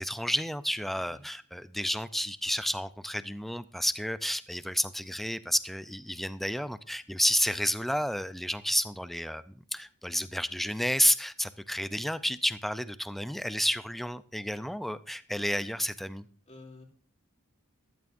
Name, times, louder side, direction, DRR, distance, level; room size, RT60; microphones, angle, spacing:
voice 1, 0.0-16.2, equal, ahead, 14 dB, 0.5 m, -31 dB
voice 2, 0.9-1.2 16.1-16.8, left 2 dB, 30° left, 0 dB, 2.8 m, -52 dB
14.5 x 13.0 x 2.6 m, 0.41 s
head